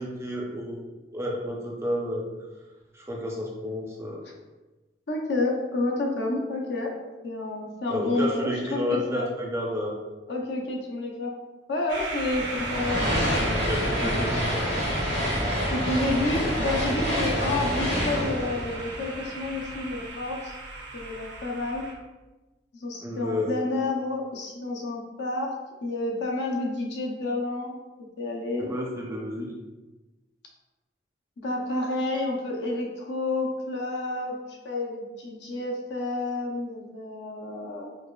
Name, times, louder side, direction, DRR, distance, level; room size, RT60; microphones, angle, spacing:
voice 1, 0.0-2.3 2.9-4.2 7.9-10.0 13.6-14.9 23.0-23.6 28.6-29.5, left 1 dB, 15° right, -2 dB, 0.4 m, -31 dB
voice 2, 5.1-6.9 7.2-9.3 10.3-11.3 11.7-13.6 13.8-14.4 15.7-20.6 20.9-21.8 22.7-25.5 25.8-27.8 28.2-28.7 31.4-37.9, left 2 dB, 65° left, 0 dB, 0.6 m, -30 dB
sound 1, 11.9-21.9, right 2 dB, 75° right, 0.6 m, -37 dB
sound 2, 12.3-19.7, equal, 85° left, 1.2 m, -27 dB
4.8 x 2.3 x 2.3 m, 1.2 s
head